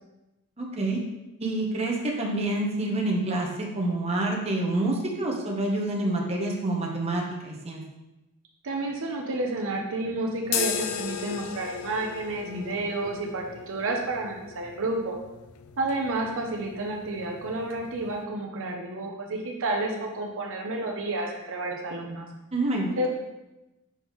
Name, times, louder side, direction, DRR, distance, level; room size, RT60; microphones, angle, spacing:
voice 1, 0.6-1.0 1.4-7.8 22.5-22.9, right 2 dB, 30° right, -1 dB, 0.9 m, -27 dB
voice 2, 8.6-15.2 15.8-22.3 23.0-23.1, right 2 dB, 60° right, 1 dB, 0.7 m, -30 dB
sound 1, 10.4-18.2, left 8 dB, 90° left, 0.5 m, -37 dB
5.7 x 5.3 x 3.1 m, 0.98 s
head